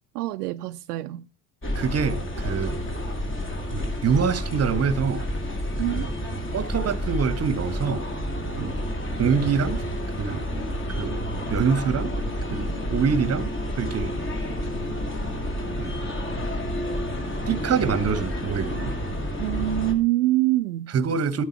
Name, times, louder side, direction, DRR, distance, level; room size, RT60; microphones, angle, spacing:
voice 1, 0.1-1.3 5.8-6.1 19.4-20.9, right 17 dB, 65° right, 0.6 m, -25 dB
sound 1, 1.6-19.9, equal, 25° left, 2.8 m, -29 dB
voice 2, 1.7-2.8 3.7-5.3 5.9-6.1 6.5-8.1 8.6-8.8 9.2-9.8 10.2-11.2 11.5-12.1 12.5-14.1 15.8-16.0 17.5-19.0 20.9-21.4, right 6 dB, 30° right, 1.2 m, -25 dB
14.0 x 9.3 x 4.4 m
figure-of-eight pair, 60°, 49 cm